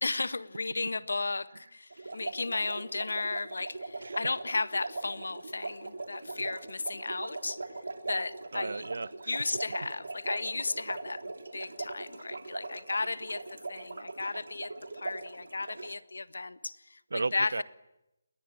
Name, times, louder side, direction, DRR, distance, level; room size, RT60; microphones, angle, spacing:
voice 1, 0.0-7.8 8.1-8.9 9.3-11.2 11.5-17.6, left 3 dB, 90° left, 13 dB, 1.6 m, -34 dB
sound 1, 1.9-15.9, right 3 dB, 90° right, 3.3 m, -41 dB
voice 2, 8.5-9.3 17.1-17.6, right 3 dB, 70° right, 19 dB, 1.1 m, -34 dB
29.5 x 21.0 x 8.9 m, 0.92 s
hypercardioid pair, 175°, 0 cm